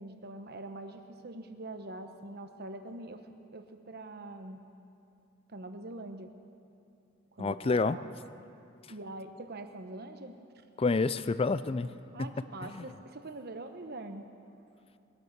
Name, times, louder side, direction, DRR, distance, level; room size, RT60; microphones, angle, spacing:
voice 1, 0.0-3.2 3.5-4.6 5.5-6.3 7.3-8.0 8.9-10.4 12.1-14.3, right 2 dB, 55° right, 7 dB, 1.1 m, -43 dB
voice 2, 7.4-8.0 10.8-11.9 12.2-12.3 12.6-12.8, left 3 dB, 30° left, 15 dB, 0.4 m, -28 dB
20.5 x 11.0 x 6.6 m, 2.6 s
head